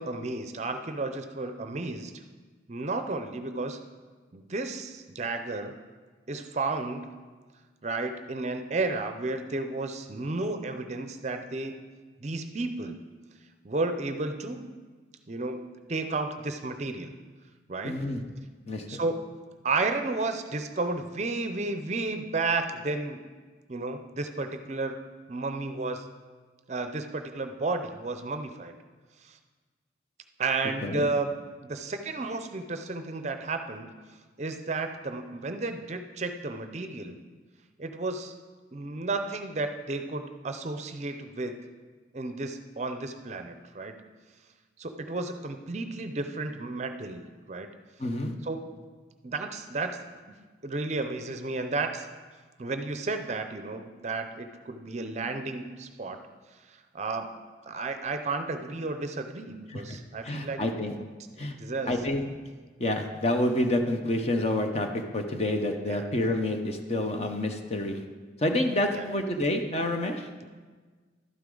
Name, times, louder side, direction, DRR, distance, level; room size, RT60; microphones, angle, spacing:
voice 1, 0.0-2.2 2.7-3.8 4.3-5.7 6.3-7.1 7.8-11.8 12.2-13.0 13.6-14.7 15.3-17.1 17.7-18.0 18.9-19.3 19.6-23.2 23.7-25.0 25.3-26.1 26.7-28.7 29.2-29.4 30.4-31.3 31.6-33.9 34.4-37.2 37.8-38.3 38.7-41.6 42.1-43.9 44.8-47.7 48.4-48.9 49.2-50.0 50.6-52.1 52.6-56.2 56.7-57.4 57.7-60.6 61.4-61.9 65.9-66.0 68.9-69.1, right 3 dB, 35° right, 7 dB, 0.5 m, -32 dB
voice 2, 17.8-18.2 18.7-19.0 30.8-31.1 48.0-48.3 59.7-60.0 60.2-61.0 61.4-61.6 61.9-62.2 62.8-68.0 68.4-70.3, left 1 dB, 35° left, 5 dB, 0.7 m, -28 dB
12.0 x 9.4 x 3.8 m, 1.4 s
head